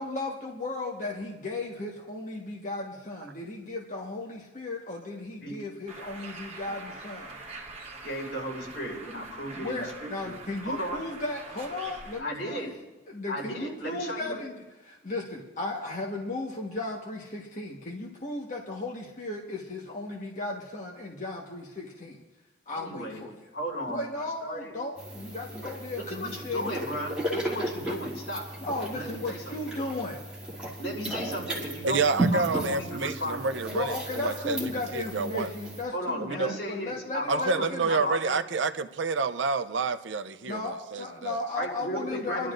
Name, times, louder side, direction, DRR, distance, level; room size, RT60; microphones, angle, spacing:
voice 1, 0.0-7.4 9.5-12.7 13.1-14.5 14.8-22.2 22.7-23.3 23.9-27.0 28.6-30.2 33.7-38.1 40.5-42.5, left 2 dB, 40° left, 1.4 m, -35 dB
Bird, 5.9-12.2, right 3 dB, 30° right, 1.3 m, -44 dB
voice 2, 8.0-10.3 10.6-11.0 12.2-12.8 13.3-14.4 22.7-23.2 23.5-24.7 25.9-28.5 28.9-29.5 30.8-33.6 35.9-38.4 41.5-42.5, equal, 75° left, 4.8 m, -35 dB
sound 1, 25.0-35.8, right 1 dB, 5° right, 2.9 m, -35 dB
voice 3, 31.8-34.6 34.9-35.5 36.2-36.5 37.3-40.6 40.9-41.4, right 4 dB, 70° right, 0.6 m, -28 dB
29.0 x 12.0 x 2.6 m
head